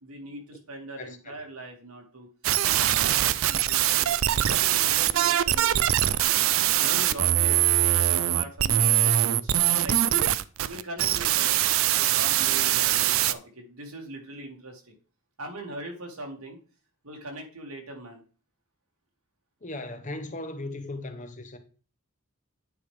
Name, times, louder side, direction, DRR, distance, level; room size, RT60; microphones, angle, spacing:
voice 1, 0.0-2.3 2.8-6.4 6.8-10.2 10.6-14.9 15.4-16.6 17.0-18.2, right 1 dB, 85° right, 2.3 m, -41 dB
voice 2, 1.0-1.3 19.6-21.6, left 2 dB, 35° left, 1.0 m, -37 dB
sound 1, 2.4-13.3, right 12 dB, 65° right, 0.4 m, -23 dB
9.4 x 5.0 x 3.4 m
head